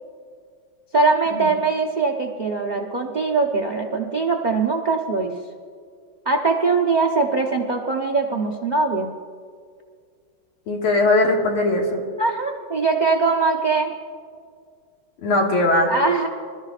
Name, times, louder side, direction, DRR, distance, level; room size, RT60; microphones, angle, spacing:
voice 1, 0.9-5.3 6.2-9.1 12.2-13.9 15.9-16.3, right 4 dB, 60° right, 2 dB, 0.4 m, -21 dB
voice 2, 10.7-12.0 15.2-15.9, left 2 dB, 85° left, -1 dB, 2.7 m, -19 dB
25.5 x 13.0 x 2.4 m, 2.1 s
omnidirectional pair, 2.3 m